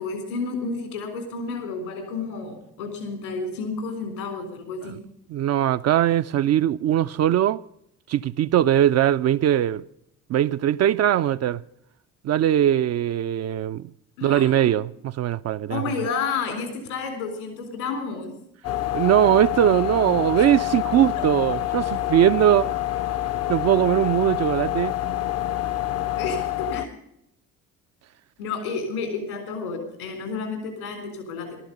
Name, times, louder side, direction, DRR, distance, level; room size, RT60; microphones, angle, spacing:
voice 1, 0.0-5.0 14.2-14.7 15.7-18.3 20.4-20.5 26.2-26.9 28.4-31.6, left 4 dB, 80° left, 3.8 m, -31 dB
voice 2, 5.3-7.6 8.1-9.8 10.3-11.6 12.2-13.9 14.2-15.8 18.9-22.7 23.5-24.9, right 11 dB, 40° right, 0.5 m, -20 dB
sound 1, 18.6-26.9, left 13 dB, 35° left, 0.7 m, -27 dB
14.0 x 13.0 x 5.3 m
figure-of-eight pair, 50°, 42 cm